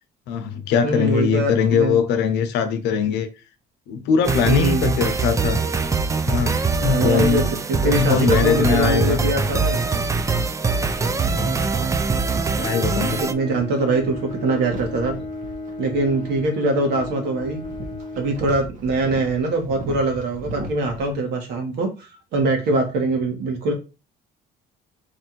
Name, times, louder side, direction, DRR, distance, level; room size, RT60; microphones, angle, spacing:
voice 1, 0.3-3.3 3.9-5.6 6.3-7.4 7.8-9.2 10.8-11.5 12.6-13.2, left 7 dB, 85° left, 0.8 m, -21 dB
voice 2, 0.8-2.0 4.4-4.9 6.8-7.4 7.7-9.8 13.1-15.1 15.8-17.6 18.2-23.7, right 2 dB, 75° right, 1.5 m, -23 dB
sound 1, 4.2-13.3, right 4 dB, 20° right, 0.4 m, -23 dB
sound 2, 12.1-21.1, right 1 dB, 50° right, 1.1 m, -38 dB
Bowed string instrument, 12.4-19.1, left 2 dB, 30° left, 0.7 m, -35 dB
3.3 x 2.6 x 4.4 m
cardioid pair, 110°, 17 cm